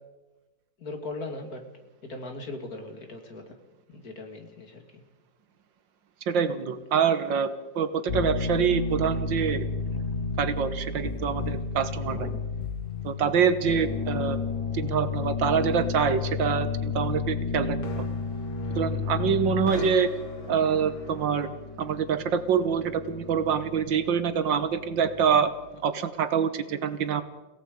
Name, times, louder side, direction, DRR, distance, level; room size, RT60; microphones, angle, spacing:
voice 1, 0.8-1.6 2.0-3.6 3.9-5.0 12.1-12.4, left 2 dB, 45° left, 4 dB, 2.7 m, -39 dB
voice 2, 6.3-9.7 9.9-10.1 10.4-12.3 13.0-14.4 14.7-17.8 18.8-20.1 20.5-21.5 21.8-25.5 25.8-27.2, right 7 dB, 70° right, 11 dB, 1.8 m, -25 dB
sound 1, 8.1-25.5, left 5 dB, 75° left, 2.6 m, -32 dB
30.0 x 17.5 x 5.2 m, 1.1 s
omnidirectional pair, 2.2 m